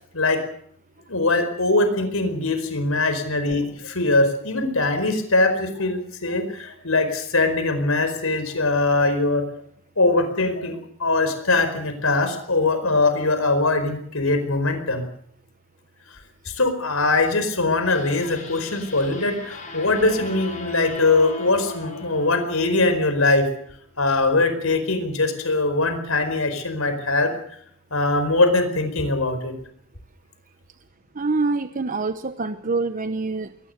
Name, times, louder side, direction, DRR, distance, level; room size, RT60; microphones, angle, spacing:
voice 1, 1.1-9.4 10.0-15.1 16.4-23.5 24.0-27.3 27.9-29.5, left 2 dB, 80° left, 9 dB, 4.8 m, -22 dB
sound 1, 17.9-23.2, left 3 dB, 40° left, 6.4 m, -37 dB
voice 2, 31.1-33.5, right 3 dB, 40° right, 10 dB, 0.9 m, -25 dB
22.5 x 19.5 x 6.7 m, 0.66 s
head